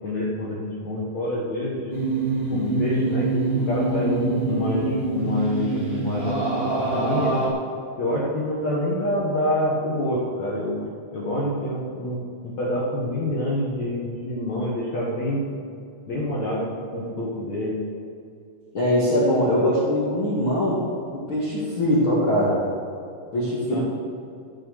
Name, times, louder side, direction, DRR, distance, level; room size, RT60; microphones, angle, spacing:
voice 1, 0.0-1.9 2.5-6.3 6.9-7.3 8.0-15.6 16.1-17.8 23.7-23.8, left 1 dB, 85° left, -6 dB, 1.5 m, -27 dB
sound 1, 1.9-7.5, right 2 dB, 40° right, 0.8 m, -25 dB
voice 2, 18.7-20.8 21.1-22.6 23.3-23.8, equal, 50° left, -8 dB, 1.5 m, -22 dB
15.0 x 6.5 x 6.5 m, 2.6 s
omnidirectional pair, 6.0 m